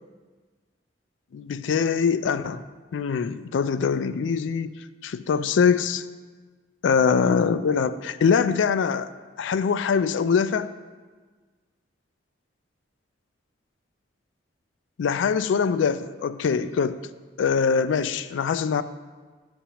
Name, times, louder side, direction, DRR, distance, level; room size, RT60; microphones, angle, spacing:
voice 1, 1.3-2.6 2.9-4.7 5.0-6.0 6.8-9.1 9.4-10.7 15.0-17.0 17.4-18.8, left 6 dB, 80° left, 13 dB, 0.3 m, -23 dB
11.0 x 7.1 x 2.9 m, 1.4 s
head